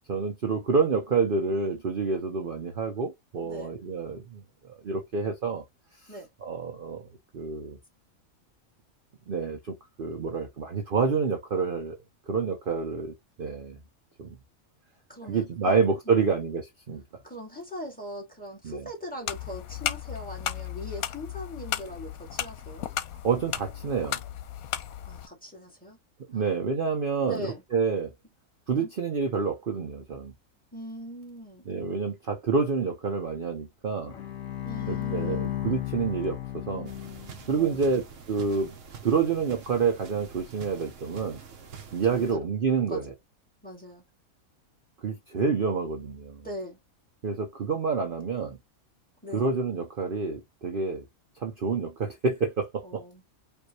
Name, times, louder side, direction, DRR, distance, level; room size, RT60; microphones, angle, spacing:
voice 1, 0.1-5.6 6.4-7.1 7.3-7.8 9.3-12.0 12.3-13.8 14.2-14.4 15.3-17.0 18.6-18.9 23.2-24.2 26.3-28.1 28.7-30.3 31.7-34.1 34.9-36.9 37.5-38.7 39.0-41.4 41.9-43.1 45.0-46.5 47.2-48.6 49.3-51.0 51.4-53.0, right 5 dB, 45° right, 0.8 m, -28 dB
voice 2, 3.4-3.7 6.1-6.3 15.1-15.7 16.1-16.3 17.2-22.9 25.1-26.0 26.3-26.5 27.3-27.6 28.8-28.9 30.7-31.7 34.6-35.5 37.5-38.0 42.1-42.5 42.8-43.1 43.6-44.0 46.4-46.8 49.2-49.5 52.8-53.2, equal, 5° left, 1.8 m, -41 dB
sound 1, 19.3-25.3, left 11 dB, 85° left, 1.1 m, -35 dB
Bowed string instrument, 34.1-37.6, left 12 dB, 70° left, 1.5 m, -34 dB
sound 2, 36.9-42.4, right 6 dB, 65° right, 1.2 m, -46 dB
5.0 x 2.7 x 2.9 m
omnidirectional pair, 1.5 m